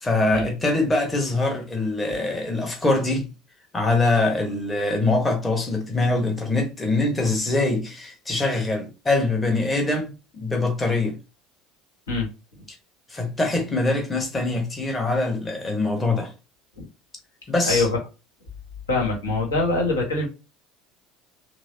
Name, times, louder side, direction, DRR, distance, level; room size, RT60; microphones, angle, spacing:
voice 1, 0.0-3.3 3.7-11.2 13.1-16.3 17.5-17.9, left 2 dB, 15° left, 1.1 m, -23 dB
voice 2, 17.7-18.0 18.9-20.3, left 3 dB, 75° left, 1.3 m, -23 dB
6.0 x 2.0 x 2.7 m
figure-of-eight pair, 65°, 0 cm